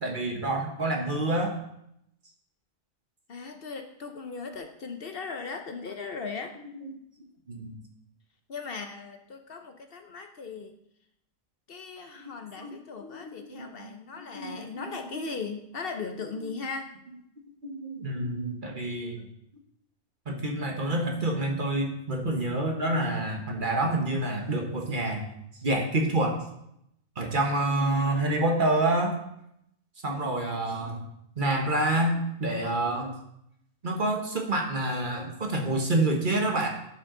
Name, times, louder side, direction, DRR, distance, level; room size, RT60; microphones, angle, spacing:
voice 1, 0.0-1.5 6.7-6.9 7.5-7.8 12.2-13.9 14.3-14.9 15.1-15.2 16.4-16.5 17.6-19.2 20.2-25.3 25.6-26.4 27.2-29.2 30.0-31.0 31.4-33.2 33.8-36.7, right 1 dB, 45° right, 2 dB, 1.4 m, -28 dB
voice 2, 3.3-6.5 8.5-10.8 11.7-16.9, left 4 dB, 55° left, 5 dB, 0.9 m, -38 dB
11.5 x 6.0 x 3.8 m, 0.78 s
omnidirectional pair, 1.2 m